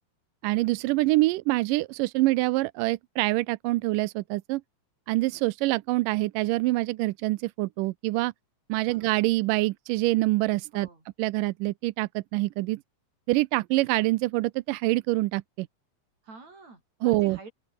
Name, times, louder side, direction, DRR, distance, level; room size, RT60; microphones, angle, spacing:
voice 1, 0.4-4.6 5.1-8.3 8.7-10.9 11.2-12.8 13.3-15.7 17.0-17.4, right 20 dB, 85° right, 2.2 m, -25 dB
voice 2, 8.8-9.1 10.7-11.0 16.2-17.5, right 3 dB, 55° right, 8.4 m, -48 dB
open air
omnidirectional pair, 3.9 m